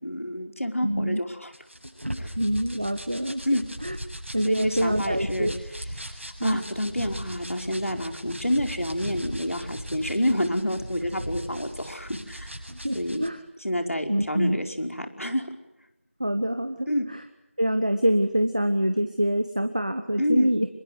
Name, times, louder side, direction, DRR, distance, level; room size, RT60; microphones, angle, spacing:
voice 1, 0.0-1.5 2.2-2.3 3.4-3.6 4.4-5.5 6.4-12.6 12.9-13.2 13.6-15.5 16.9-17.1 20.2-20.5, equal, 85° left, 5 dB, 5.1 m, -28 dB
voice 2, 0.8-1.2 2.4-3.4 3.8-4.0 4.3-5.5 6.4-6.6 12.8-13.4 14.1-14.6 16.2-16.9 17.6-20.7, equal, 35° right, 8 dB, 1.4 m, -25 dB
sound 1, 1.5-13.3, equal, 60° right, 7.8 m, -38 dB
26.0 x 23.5 x 8.0 m, 0.86 s
figure-of-eight pair, 180°, 7 cm